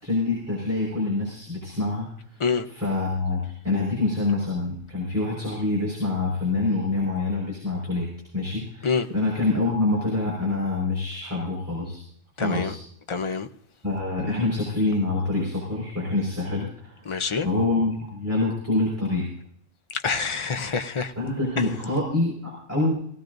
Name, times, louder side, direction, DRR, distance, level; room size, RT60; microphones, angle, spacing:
voice 1, 0.0-2.4 2.6-8.1 8.3-12.0 12.4-12.8 13.8-17.0 17.4-19.3 21.1-22.9, left 2 dB, 10° right, 5.0 m, -26 dB
voice 2, 12.4-12.7 13.1-13.5 17.1-17.5 20.0-21.1, left 5 dB, 30° left, 0.6 m, -26 dB
19.5 x 17.0 x 2.6 m
omnidirectional pair, 1.3 m